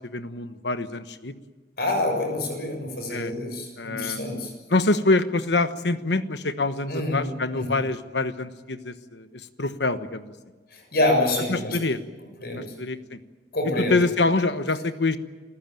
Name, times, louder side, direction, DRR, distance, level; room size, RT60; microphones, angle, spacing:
voice 1, 0.1-1.3 3.1-3.3 3.8-9.3 9.6-10.3 11.5-12.0 12.5-13.2 13.9-15.2, left 2 dB, 80° left, 11 dB, 1.2 m, -25 dB
voice 2, 1.8-4.5 6.8-7.8 10.7-11.8 12.4-12.7 13.5-14.0, left 1 dB, 60° left, 4 dB, 6.9 m, -27 dB
27.5 x 15.0 x 9.2 m, 1.3 s
head